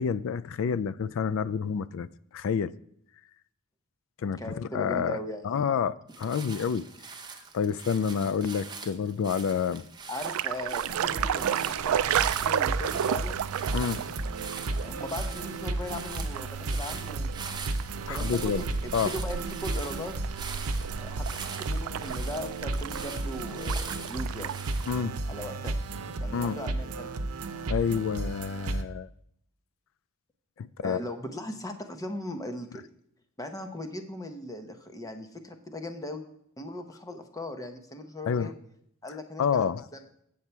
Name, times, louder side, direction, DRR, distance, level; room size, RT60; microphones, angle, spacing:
voice 1, 0.0-2.1 2.3-2.7 4.2-5.2 5.4-6.8 7.5-9.8 13.7-14.0 18.1-18.6 18.9-19.1 24.9-25.2 26.3-26.6 27.7-29.1 30.6-31.0 38.3-38.5 39.4-39.8, left 6 dB, 65° left, 0.3 m, -28 dB
voice 2, 4.4-5.6 10.1-13.4 14.8-17.3 18.1-20.2 21.0-24.5 25.3-25.7 26.2-27.1 30.8-32.8 33.4-36.2 36.6-38.5 39.0-40.0, left 1 dB, 15° left, 0.8 m, -39 dB
sound 1, 6.1-24.9, right 5 dB, 20° right, 0.8 m, -43 dB
sound 2, 10.2-25.0, right 9 dB, 70° right, 0.3 m, -33 dB
sound 3, 10.9-28.8, right 2 dB, 85° right, 0.7 m, -34 dB
8.2 x 7.2 x 4.4 m
head